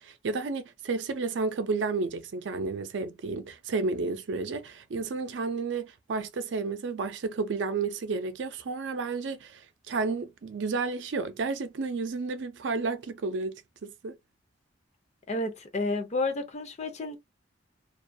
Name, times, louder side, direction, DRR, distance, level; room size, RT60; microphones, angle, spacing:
voice 1, 0.0-14.2, right 4 dB, 75° right, 0.4 m, -32 dB
voice 2, 15.3-17.2, left 2 dB, 40° left, 0.6 m, -31 dB
2.3 x 2.2 x 2.6 m
head